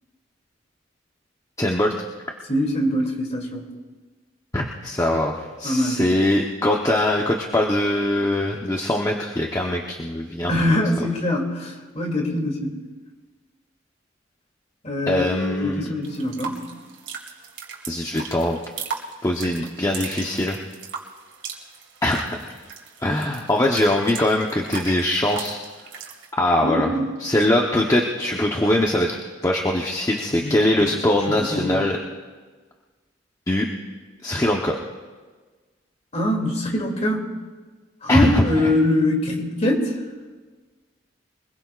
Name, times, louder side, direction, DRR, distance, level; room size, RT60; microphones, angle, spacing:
voice 1, 1.6-1.9 4.5-10.5 15.1-15.9 17.9-18.6 19.2-20.6 22.0-22.5 23.0-25.6 26.4-26.9 27.2-29.1 29.4-32.0 33.5-33.7 34.2-34.8 38.1-38.7, left 1 dB, 20° left, 0 dB, 0.9 m, -22 dB
voice 2, 2.5-3.7 5.6-6.0 10.5-12.7 14.8-16.6 26.6-27.1 30.3-30.9 31.4-31.8 36.1-37.3 38.0-40.0, left 1 dB, 35° left, 1 dB, 2.7 m, -23 dB
sound 1, 16.0-26.3, right 6 dB, 80° right, 2.7 m, -38 dB
25.0 x 21.0 x 2.5 m, 1.4 s
head